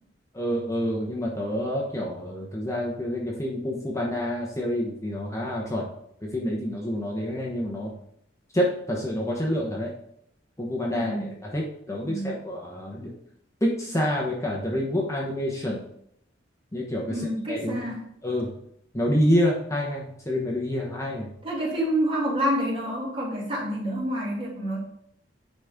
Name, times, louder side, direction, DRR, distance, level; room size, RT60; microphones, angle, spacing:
voice 1, 0.3-5.9 6.2-7.9 8.5-9.9 10.6-13.1 13.6-15.8 16.7-17.8 18.2-18.5 18.9-21.3, equal, 15° left, -2 dB, 1.1 m, -27 dB
voice 2, 10.9-11.3 12.0-12.4 17.1-18.0 21.4-24.8, equal, 30° right, -4 dB, 2.6 m, -28 dB
9.8 x 4.3 x 3.6 m, 0.72 s
head